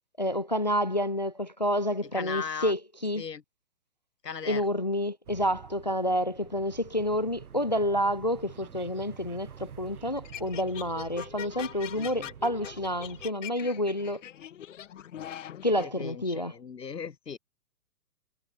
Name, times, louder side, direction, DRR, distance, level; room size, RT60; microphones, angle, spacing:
voice 1, 0.2-3.2 4.5-14.2 15.6-16.5, equal, 30° left, 0.4 m, -29 dB
voice 2, 2.0-2.7 3.2-3.4 4.2-4.6 11.9-12.3 15.8-17.4, left 6 dB, 85° left, 2.2 m, -38 dB
sound 1, 5.3-13.3, right 7 dB, 65° right, 5.3 m, -48 dB
sound 2, 10.2-15.9, left 10 dB, 50° left, 2.4 m, -42 dB
hypercardioid pair, 150°, 48 cm